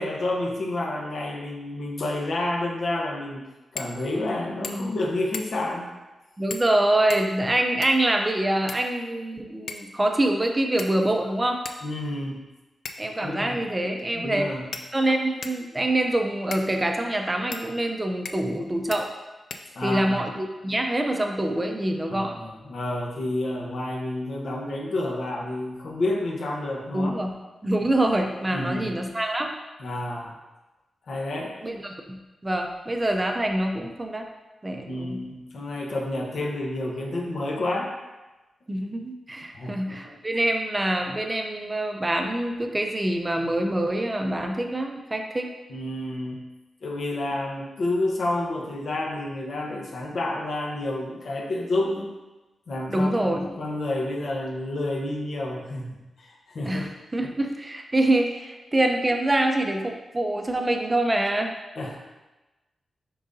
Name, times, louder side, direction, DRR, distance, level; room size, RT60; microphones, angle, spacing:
voice 1, 0.0-3.5 3.7-5.9 11.8-12.4 13.2-13.6 14.1-14.7 19.7-20.2 22.1-27.1 28.5-29.0 29.8-30.4 31.1-31.6 34.9-37.9 39.5-40.2 45.7-46.5 46.8-52.1 52.7-56.9 61.8-62.0, left 1 dB, 60° left, -1 dB, 1.0 m, -29 dB
sound 1, 3.7-4.0 4.3-4.4 4.6-5.0 5.3-5.7 6.5-6.7 7.1-8.1 8.7-9.3 9.7-9.9 10.8-11.2 11.6-11.8 12.8-13.2 14.0-14.1 14.7-15.6 16.5-16.7 17.5-17.7 18.2-18.6 18.9-19.0 19.5-20.1, left 4 dB, 75° left, 0.5 m, -38 dB
voice 2, 6.4-11.6 13.0-14.5 14.9-19.1 19.8-22.4 26.9-27.3 27.6-29.5 31.6-32.2 32.4-34.3 34.6-35.2 38.7-45.5 52.9-53.5 56.6-61.5, right 1 dB, 15° right, 3 dB, 0.6 m, -25 dB
10.0 x 3.9 x 2.7 m, 1.1 s
wide cardioid pair, 155°, 0 cm